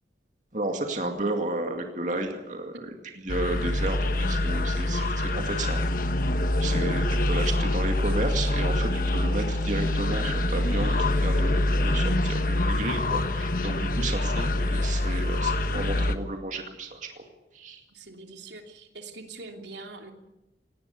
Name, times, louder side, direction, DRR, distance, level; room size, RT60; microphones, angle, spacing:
voice 1, 0.5-5.8 6.6-17.2 17.5-17.8, right 2 dB, 45° right, 3 dB, 2.3 m, -32 dB
sound 1, 3.3-16.2, left 1 dB, 50° left, 1.2 m, -25 dB
voice 2, 17.9-20.1, right 3 dB, 85° right, 3 dB, 3.0 m, -43 dB
18.5 x 18.5 x 8.4 m, 0.97 s
head